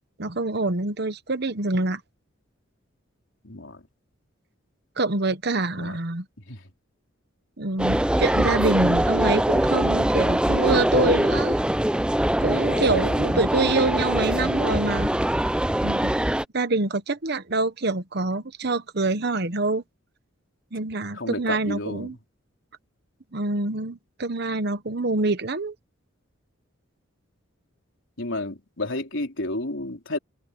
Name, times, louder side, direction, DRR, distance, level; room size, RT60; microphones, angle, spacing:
voice 1, 0.2-2.0 5.0-6.3 7.6-11.6 12.4-15.2 15.8-16.2 16.5-19.8 20.7-22.2 23.3-25.7, right 2 dB, 55° right, 1.1 m, -25 dB
voice 2, 3.4-3.8 5.8-6.0 6.5-6.6 12.7-13.3 21.1-22.1 28.2-30.2, left 2 dB, 70° left, 3.7 m, -31 dB
sound 1, 7.8-16.4, right 1 dB, 5° right, 0.4 m, -22 dB
head